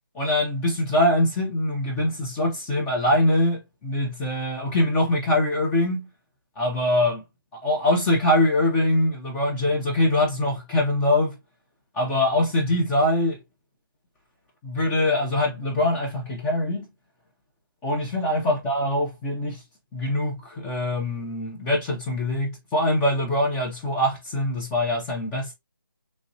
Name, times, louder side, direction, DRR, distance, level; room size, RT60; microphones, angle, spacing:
voice 1, 0.1-6.1 6.6-7.2 7.5-11.4 11.9-13.4 14.6-16.9 17.8-19.6 19.9-25.5, left 1 dB, 10° left, 0.6 m, -23 dB
3.2 x 2.5 x 2.6 m
figure-of-eight pair, 155°, 12 cm